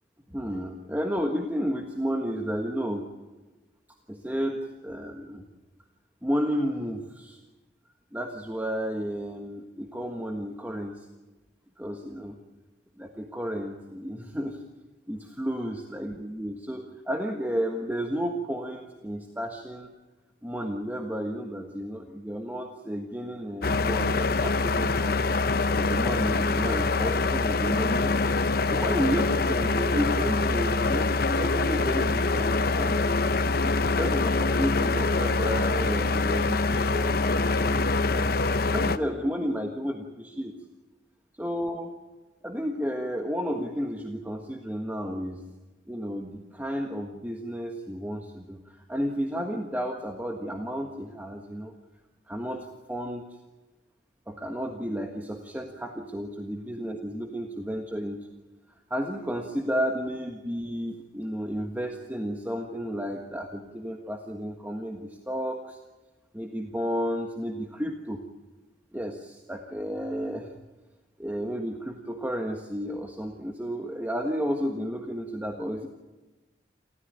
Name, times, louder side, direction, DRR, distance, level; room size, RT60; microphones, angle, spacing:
voice 1, 0.3-3.1 4.1-5.4 6.2-7.4 8.1-11.1 11.8-12.4 13.0-14.6 15.1-19.9 20.4-25.2 25.7-28.1 28.7-33.1 33.6-38.4 38.7-40.6 41.4-41.9 42.4-45.4 45.9-51.7 52.3-53.2 54.3-58.3 58.9-65.8 66.3-68.2 68.9-70.5 71.2-75.9, equal, 10° right, 3 dB, 1.5 m, -32 dB
sound 1, 23.6-39.0, left 3 dB, 55° left, 0.9 m, -25 dB
28.5 x 14.0 x 9.4 m, 1.2 s
head